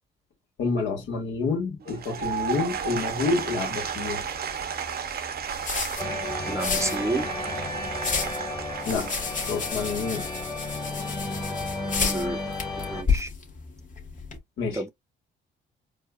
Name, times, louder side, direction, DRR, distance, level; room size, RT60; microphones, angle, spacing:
voice 1, 0.6-4.2 8.8-9.1 9.5-10.3 14.6-14.8, left 4 dB, 75° left, 1.5 m, -28 dB
Applause / Crowd, 1.8-10.0, right 8 dB, 50° right, 0.7 m, -33 dB
sound 1, 2.2-14.4, left 5 dB, 40° left, 1.3 m, -33 dB
sound 2, 6.0-13.0, left 2 dB, 20° left, 1.3 m, -33 dB
voice 2, 6.5-7.3 12.0-12.4 12.9-13.3 14.7-14.9, right 2 dB, 15° right, 0.6 m, -30 dB
4.6 x 2.3 x 2.3 m
cardioid pair, 90°, 20 cm